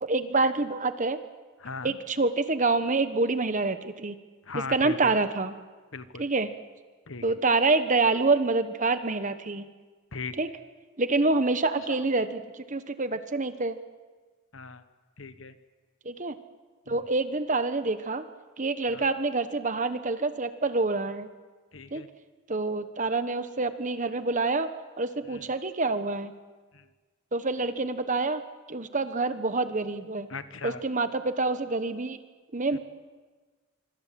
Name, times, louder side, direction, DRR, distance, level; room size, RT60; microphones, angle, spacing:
voice 1, 0.0-1.2 1.8-4.2 4.5-5.5 6.2-6.5 7.2-9.7 10.4-10.5 11.0-13.8 16.0-16.4 16.9-18.2 18.6-21.3 21.9-22.0 22.5-24.7 25.0-26.3 27.3-28.4 28.7-30.3 30.6-32.2 32.5-32.8, right 3 dB, 35° right, 10 dB, 1.1 m, -27 dB
voice 2, 1.6-2.0 4.4-5.2 5.9-6.3 7.1-7.4 10.1-10.3 11.8-12.3 14.5-14.8 15.2-15.5 16.9-17.1 18.9-19.1 21.7-22.1 25.3-25.4 26.7-26.8 30.3-30.8 32.7-32.8, left 4 dB, 60° left, 11 dB, 1.3 m, -39 dB
25.5 x 25.0 x 7.6 m, 1.4 s
head